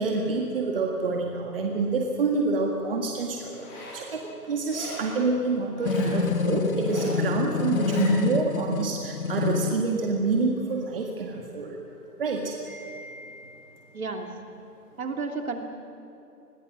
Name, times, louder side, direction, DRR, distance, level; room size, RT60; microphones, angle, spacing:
voice 1, 0.0-11.8 12.2-13.9, right 3 dB, 35° right, 0 dB, 2.0 m, -27 dB
Zipper (clothing), 3.5-4.1 4.7-5.2 5.7-6.2 6.7-7.2 7.7-8.1, left 1 dB, 5° left, 1.3 m, -40 dB
sound 1, 5.8-9.8, left 6 dB, 60° left, 1.6 m, -27 dB
voice 2, 13.9-14.3 15.0-15.7, right 4 dB, 60° right, 3 dB, 3.0 m, -32 dB
29.5 x 21.5 x 6.3 m, 2.8 s
hypercardioid pair, 165°, 48 cm